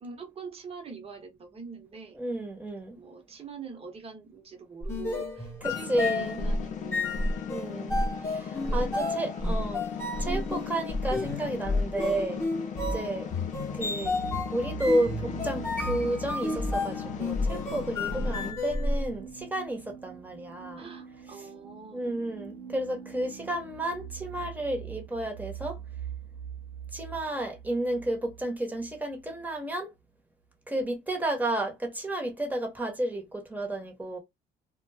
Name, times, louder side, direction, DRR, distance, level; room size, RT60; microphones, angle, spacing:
voice 1, 0.0-2.2 2.9-7.3 8.6-9.2 18.1-18.5 20.8-22.2, right 5 dB, 35° right, 1.0 m, -44 dB
voice 2, 2.2-3.0 5.6-6.4 7.5-9.8 10.2-12.4 12.9-13.3 13.7-14.2 14.5-20.9 21.9-25.8 26.9-29.9 30.7-34.2, right 1 dB, 10° right, 1.0 m, -32 dB
sound 1, 4.8-19.1, left 2 dB, 15° left, 0.9 m, -31 dB
sound 2, 5.6-18.5, left 7 dB, 45° left, 0.6 m, -38 dB
sound 3, 14.0-29.5, right 9 dB, 90° right, 0.5 m, -43 dB
2.2 x 2.1 x 3.3 m
cardioid pair, 110°, 17 cm